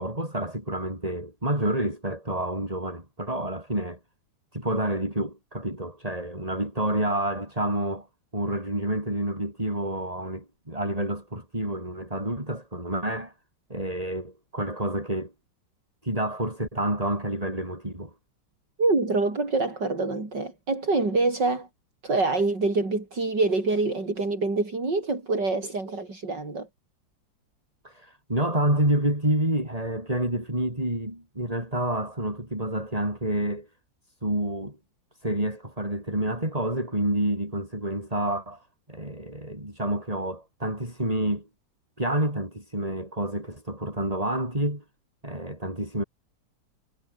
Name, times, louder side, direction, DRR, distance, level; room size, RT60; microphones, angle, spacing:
voice 1, 0.0-4.0 4.5-8.1 8.3-13.3 13.7-15.3 16.0-18.1 27.8-33.7 34.2-34.8 35.2-41.5 42.0-44.8 45.2-46.0, right 1 dB, 20° right, 7.3 m, -28 dB
voice 2, 18.8-21.7 22.0-26.7, right 3 dB, 65° right, 6.1 m, -25 dB
omnidirectional pair, 2.1 m